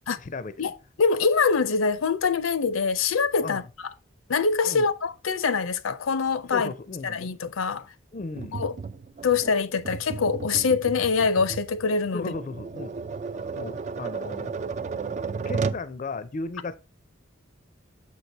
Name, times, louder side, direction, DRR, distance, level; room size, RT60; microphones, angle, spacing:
voice 1, 0.1-0.5 3.4-3.7 4.6-4.8 6.5-7.3 8.1-8.6 12.1-13.0 13.5-14.6 15.5-16.8, left 3 dB, 40° left, 0.4 m, -35 dB
voice 2, 1.0-3.6 4.3-6.7 7.0-7.8 8.5-8.7 9.2-12.3, left 5 dB, 85° left, 0.6 m, -24 dB
Tap, 8.4-15.9, right 5 dB, 35° right, 0.3 m, -34 dB
7.1 x 4.6 x 4.0 m
head